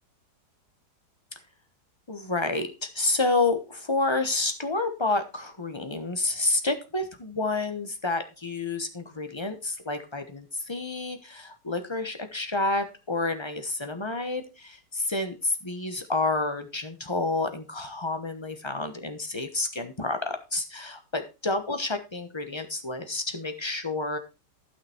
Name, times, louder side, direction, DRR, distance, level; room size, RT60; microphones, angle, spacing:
voice 1, 2.1-24.2, left 3 dB, 20° left, 8 dB, 1.0 m, -29 dB
12.5 x 5.9 x 4.4 m, 0.28 s
omnidirectional pair, 1.9 m